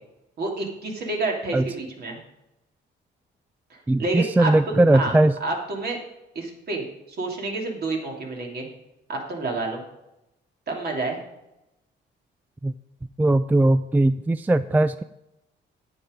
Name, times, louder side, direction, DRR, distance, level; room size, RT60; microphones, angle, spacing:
voice 1, 0.4-2.2 3.7-4.5 4.9-5.1 5.4-6.0 6.3-6.9 7.2-8.7 9.1-9.8 10.7-11.2, right 2 dB, 55° right, 0 dB, 2.9 m, -29 dB
voice 2, 3.9-5.3 12.6-12.7 13.2-15.0, right 2 dB, 10° right, 13 dB, 0.3 m, -19 dB
9.7 x 8.8 x 5.2 m, 0.89 s
cardioid pair, 90°, 20 cm